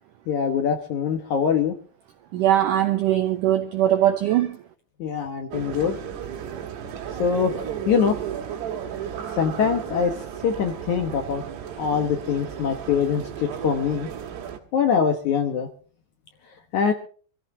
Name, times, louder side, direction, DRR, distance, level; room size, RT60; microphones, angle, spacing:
voice 1, 0.3-1.7 5.0-5.9 7.2-8.2 9.4-10.1 10.4-11.4 11.8-14.1 14.7-15.7 16.7-16.9, left 7 dB, 65° left, 5 dB, 1.9 m, -23 dB
voice 2, 2.3-4.5, right 12 dB, 90° right, 7 dB, 1.8 m, -20 dB
sound 1, 5.5-14.6, right 9 dB, 75° right, 3.8 m, -34 dB
25.0 x 14.5 x 2.8 m, 0.41 s
omnidirectional pair, 4.9 m